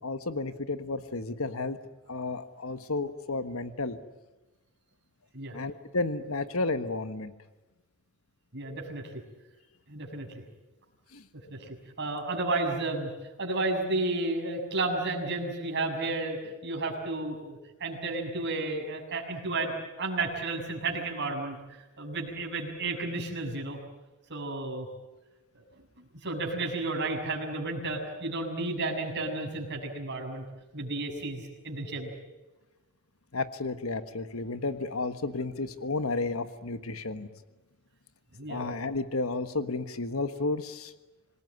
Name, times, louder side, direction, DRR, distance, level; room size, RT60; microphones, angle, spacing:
voice 1, 0.0-1.8 2.1-4.0 5.5-7.3 11.1-11.2 33.3-37.3 38.5-40.9, left 3 dB, 75° left, 11 dB, 1.4 m, -32 dB
voice 2, 8.5-9.1 9.9-10.3 11.5-13.1 13.4-23.8 24.3-24.9 25.5-25.6 26.2-30.4 30.7-32.1 38.3-38.7, right 2 dB, 55° right, 1 dB, 6.7 m, -32 dB
27.0 x 20.0 x 9.7 m, 1.1 s
head